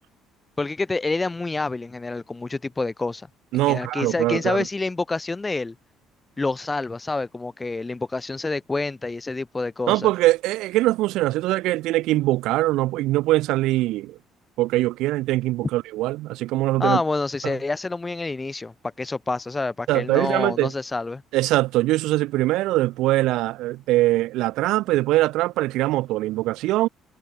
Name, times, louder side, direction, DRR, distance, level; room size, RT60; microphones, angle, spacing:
voice 1, 0.6-3.3 3.5-5.7 6.4-10.1 16.8-21.2, left 3 dB, 10° left, 1.5 m, -27 dB
voice 2, 3.5-4.6 9.9-14.2 14.6-17.0 17.4-17.6 19.9-20.7 21.3-26.9, right 17 dB, 75° right, 2.6 m, -22 dB
cardioid pair, 175°, 0 cm